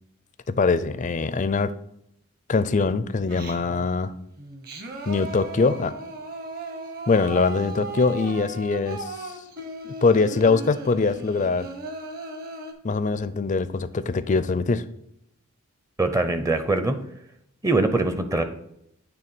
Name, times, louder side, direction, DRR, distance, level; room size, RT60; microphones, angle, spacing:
voice 1, 0.5-1.7 2.5-4.1 5.1-5.9 7.1-9.3 10.0-11.7 12.8-14.8, left 4 dB, 35° left, 14 dB, 0.4 m, -23 dB
Singing, 3.3-3.9 4.4-12.7, right 2 dB, 45° right, 1.2 m, -37 dB
voice 2, 16.0-17.0 17.6-18.4, right 2 dB, 15° right, 8 dB, 0.6 m, -22 dB
9.2 x 3.3 x 6.0 m, 0.76 s
head